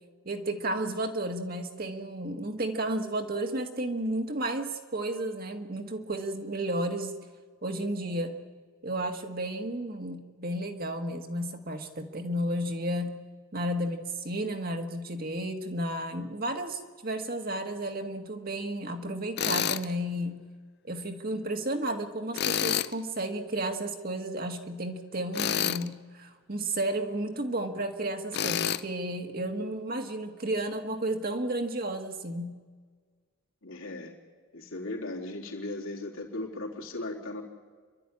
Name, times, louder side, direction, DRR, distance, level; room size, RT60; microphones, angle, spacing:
voice 1, 0.3-7.2 7.6-8.4 8.8-13.2 13.5-20.4 20.9-32.5, right 1 dB, 45° right, 5 dB, 1.8 m, -32 dB
Tools, 19.4-19.9 22.3-22.9 25.3-25.9 28.3-28.8, left 9 dB, 50° left, 0.6 m, -28 dB
voice 2, 33.6-34.1 34.5-37.4, left 2 dB, 70° left, 0 dB, 3.8 m, -37 dB
29.0 x 12.5 x 9.9 m, 1.6 s
head